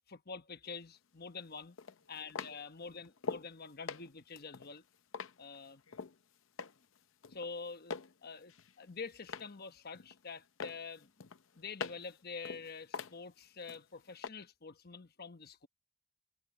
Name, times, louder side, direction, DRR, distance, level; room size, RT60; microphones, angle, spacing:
voice 1, 0.1-1.8 2.1-4.8 5.4-5.8 7.3-11.1 11.5-15.7, left 5 dB, 45° left, 1.1 m, -47 dB
sound 1, 0.7-0.8 1.8-3.5 3.9-6.2 6.6-7.0 7.2-8.1 8.5-9.6 9.9-10.3 10.6-12.1 12.5-13.8 14.2-14.3, left 5 dB, 65° left, 0.7 m, -43 dB
voice 2, 2.0-3.0 5.7-6.3, left 3 dB, 85° left, 6.3 m, -73 dB
head